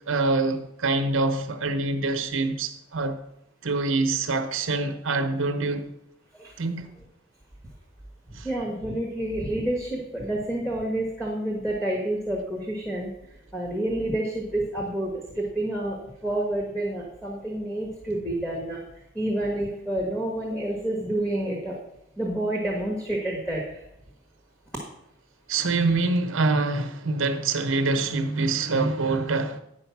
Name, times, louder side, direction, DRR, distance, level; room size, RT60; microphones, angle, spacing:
voice 1, 0.0-3.2 3.6-5.9 6.6-6.9 8.4-8.5 25.5-29.6, right 3 dB, 75° right, 0.9 m, -25 dB
voice 2, 8.4-13.1 13.5-18.8 19.1-21.8 22.2-23.9, right 1 dB, 5° left, 1.4 m, -29 dB
9.9 x 5.1 x 5.9 m
head